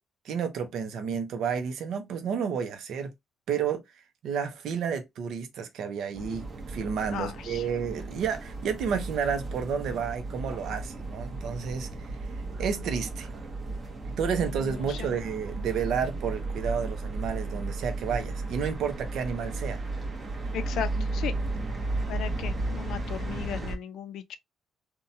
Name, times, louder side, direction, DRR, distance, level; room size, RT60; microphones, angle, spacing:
voice 1, 0.2-3.1 3.5-3.8 4.2-11.9 12.6-13.3 14.2-19.8, right 6 dB, 75° right, 0.6 m, -31 dB
sound 1, 6.2-23.8, right 2 dB, 40° right, 0.8 m, -34 dB
voice 2, 7.1-7.7 14.4-15.1 20.5-21.3 22.1-24.4, left 9 dB, 80° left, 0.4 m, -36 dB
2.8 x 2.2 x 2.6 m
cardioid pair, 90°, 0 cm